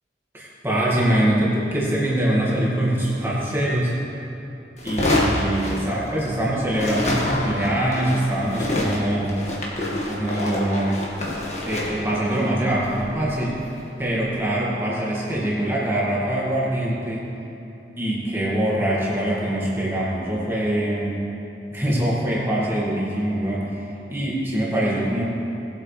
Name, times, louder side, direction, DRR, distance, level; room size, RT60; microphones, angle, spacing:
voice 1, 0.3-3.9 4.8-9.4 10.0-11.1 11.7-13.6 14.0-17.2 18.0-21.2 21.7-23.8 24.1-25.2, right 1 dB, 15° right, -6 dB, 2.0 m, -23 dB
sound 1, 4.8-6.4 6.7-13.9, left 1 dB, 40° left, 1.8 m, -27 dB
19.0 x 8.1 x 3.3 m, 2.8 s
head